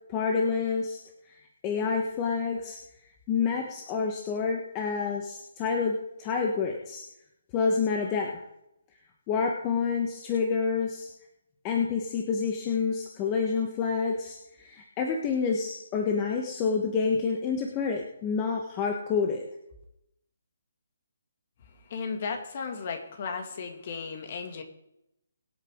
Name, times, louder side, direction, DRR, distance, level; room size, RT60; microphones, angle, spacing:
voice 1, 0.1-1.0 1.3-1.4 1.6-2.8 3.3-7.0 7.5-8.4 9.3-11.1 11.6-19.4, left 5 dB, 20° left, 1 dB, 1.2 m, -28 dB
voice 2, 21.9-24.6, left 5 dB, 40° left, 5 dB, 2.0 m, -35 dB
23.5 x 8.1 x 3.7 m, 0.84 s
hypercardioid pair, 170°, 0 cm